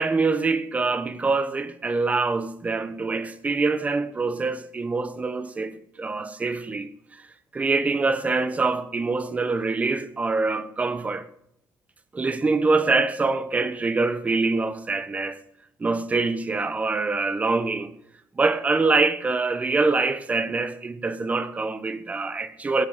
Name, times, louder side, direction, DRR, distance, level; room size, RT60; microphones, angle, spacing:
voice 1, 0.0-7.3 7.5-11.3 12.1-15.4 15.8-17.9 18.4-22.9, right 3 dB, 25° right, 1.2 m, -25 dB
16.0 x 7.1 x 7.4 m
cardioid pair, 125°, 6 cm